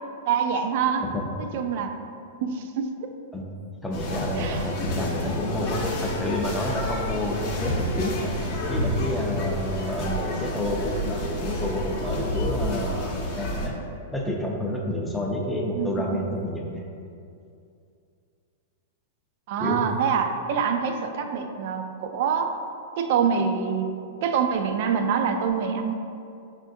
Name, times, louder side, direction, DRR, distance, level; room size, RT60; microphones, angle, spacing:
voice 1, 0.2-1.0 1.4-1.9 2.4-3.1 4.4-4.6 15.8-16.2 19.5-22.5 23.0-23.9 24.2-25.9, right 6 dB, 55° right, 6 dB, 0.3 m, -25 dB
voice 2, 3.8-13.7 14.1-16.8 19.6-20.0, left 1 dB, 5° left, -1 dB, 0.4 m, -29 dB
sound 1, 3.9-13.7, left 1 dB, 45° left, 0.7 m, -29 dB
5.5 x 2.4 x 2.6 m, 2.5 s
hypercardioid pair, 135°, 0 cm